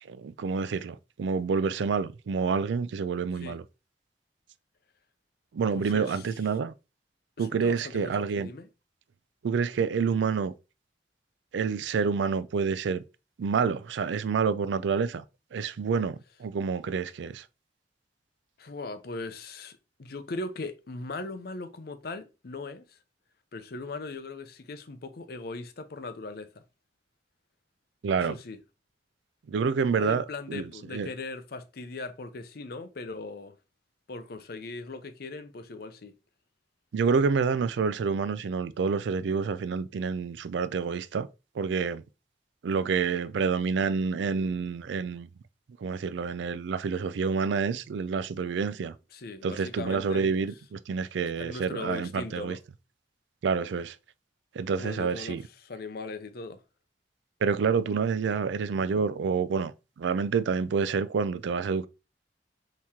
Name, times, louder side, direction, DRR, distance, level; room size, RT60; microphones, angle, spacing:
voice 1, 0.0-3.6 5.5-6.7 7.4-8.5 9.4-10.5 11.5-13.0 13.4-15.2 15.5-17.5 28.0-28.4 29.5-31.1 36.9-41.3 41.5-42.0 42.6-45.3 45.8-48.9 49.4-52.6 53.4-54.0 54.5-55.4 57.4-61.9, right 5 dB, 80° right, 0.4 m, -28 dB
voice 2, 5.7-6.2 7.4-8.7 18.6-23.0 23.5-26.6 28.3-28.6 29.9-33.6 34.1-36.1 49.1-50.3 51.4-52.6 54.8-56.6, left 3 dB, 55° left, 0.6 m, -39 dB
4.2 x 3.0 x 3.6 m
head